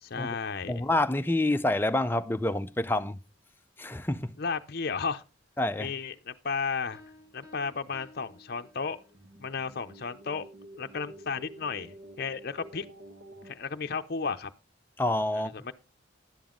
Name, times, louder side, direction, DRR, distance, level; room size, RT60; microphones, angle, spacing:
voice 1, 0.0-0.8 4.4-5.2 5.8-7.0 7.3-9.0 9.4-10.5 10.8-12.9 13.4-14.5 15.3-15.7, left 5 dB, 55° left, 0.6 m, -34 dB
voice 2, 0.7-3.2 3.8-4.3 5.6-5.9 15.0-15.5, left 1 dB, 10° left, 0.5 m, -27 dB
Piano, 6.9-9.3, left 2 dB, 20° right, 1.7 m, -55 dB
sound 1, 7.2-13.5, right 1 dB, 70° right, 1.6 m, -51 dB
11.0 x 9.0 x 3.8 m
head